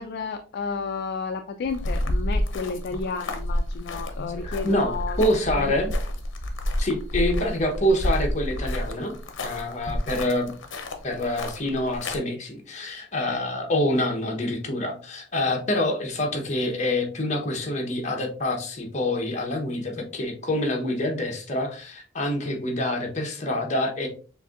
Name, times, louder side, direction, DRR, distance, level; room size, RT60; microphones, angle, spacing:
voice 1, 0.0-5.2 5.5-5.7, left 5 dB, 55° left, 7 dB, 0.3 m, -32 dB
sound 1, 1.6-12.2, left 1 dB, 75° left, 0.7 m, -29 dB
voice 2, 4.4-5.9 6.8-10.5 11.0-24.1, left 1 dB, 35° left, 2 dB, 0.9 m, -26 dB
6.6 x 2.6 x 2.4 m, 0.39 s
head